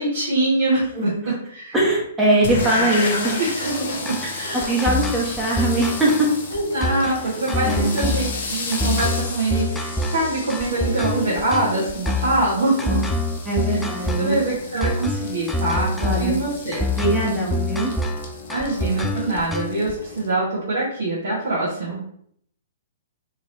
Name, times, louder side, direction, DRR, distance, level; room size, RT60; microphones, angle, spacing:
voice 1, 0.0-1.7 3.4-4.7 6.5-13.0 13.7-13.8 14.2-16.8 18.5-22.0, right 2 dB, 75° right, -8 dB, 1.4 m, -24 dB
voice 2, 1.0-1.3 1.7-3.4 4.2-6.3 7.6-7.9 12.9-13.0 13.4-14.4 16.0-16.3 16.9-17.9, right 1 dB, 10° right, -5 dB, 1.3 m, -21 dB
sound 1, 2.4-20.3, left 3 dB, 60° left, 0.9 m, -33 dB
sound 2, 4.1-19.9, left 1 dB, 5° left, 0.3 m, -26 dB
3.7 x 2.9 x 2.8 m, 0.66 s
hypercardioid pair, 135°, 0 cm